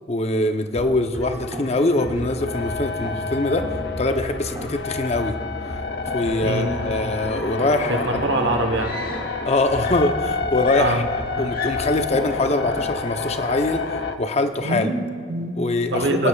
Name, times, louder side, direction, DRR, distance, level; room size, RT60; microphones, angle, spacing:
voice 1, 0.1-3.7 4.0-5.4 6.1-8.2 9.4-13.9 14.2-14.9 15.6-16.3, left 2 dB, 40° left, 7 dB, 0.7 m, -23 dB
sound 1, 0.8-12.9, equal, 25° right, 0.9 m, -36 dB
sound 2, 1.2-14.2, left 4 dB, 80° left, 0.7 m, -29 dB
voice 2, 7.9-8.9 10.7-11.1 14.6-15.6 15.9-16.3, right 2 dB, 80° right, 5 dB, 1.0 m, -24 dB
Screaming, 8.8-9.5 9.8-12.1 13.1-13.3, left 4 dB, 55° left, 1.3 m, -36 dB
23.0 x 9.9 x 2.3 m, 2.2 s
head